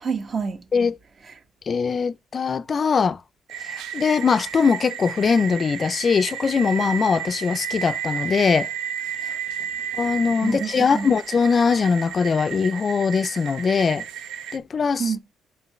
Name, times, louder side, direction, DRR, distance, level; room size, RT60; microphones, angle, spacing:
voice 1, 0.0-0.6 9.2-9.4 10.4-11.1 15.0-15.2, right 5 dB, 45° right, 1.1 m, -27 dB
voice 2, 1.7-3.2 3.6-8.7 10.0-14.0 14.5-15.1, left 5 dB, 45° left, 0.3 m, -21 dB
sound 1, 3.5-14.6, right 9 dB, 90° right, 0.5 m, -33 dB
8.4 x 3.7 x 3.1 m
cardioid pair, 90°, 0 cm